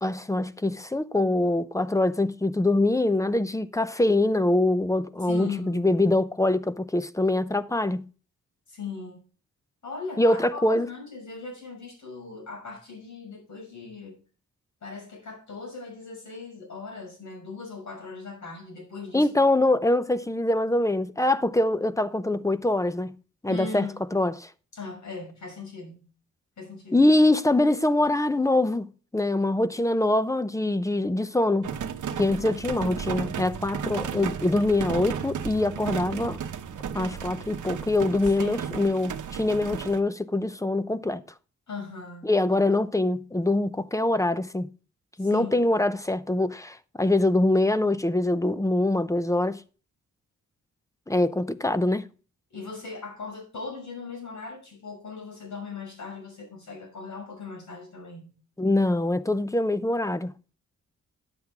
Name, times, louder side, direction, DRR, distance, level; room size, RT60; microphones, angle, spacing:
voice 1, 0.0-8.1 10.2-10.9 19.1-23.2 23.4-24.5 26.9-31.7 32.2-36.4 36.9-41.2 42.2-44.7 45.2-49.6 51.1-52.1 58.6-60.3, left 2 dB, 10° left, 0.7 m, -24 dB
voice 2, 5.2-6.0 8.7-9.2 9.8-14.2 14.8-19.3 23.5-24.1 24.7-26.0 26.6-27.1 32.4-32.6 38.4-38.9 41.7-42.6 45.2-45.6 52.5-58.3, left 4 dB, 65° left, 6.3 m, -39 dB
sound 1, 31.6-40.0, right 8 dB, 70° right, 0.9 m, -34 dB
10.5 x 7.8 x 3.6 m
cardioid pair, 85°, 31 cm